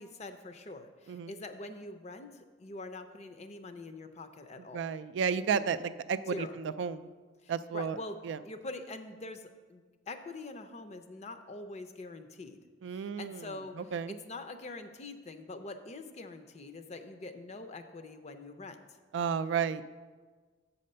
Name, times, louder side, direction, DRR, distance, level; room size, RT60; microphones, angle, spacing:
voice 1, 0.0-4.8 5.6-5.7 6.3-6.6 7.4-8.2 8.4-12.6 12.9-19.0, left 2 dB, 35° left, 8 dB, 0.5 m, -44 dB
voice 2, 4.7-7.1 7.5-8.0 8.2-8.4 12.8-13.5 13.8-14.2 19.1-19.8, right 6 dB, 80° right, 13 dB, 0.3 m, -32 dB
7.5 x 4.2 x 6.5 m, 1.4 s
head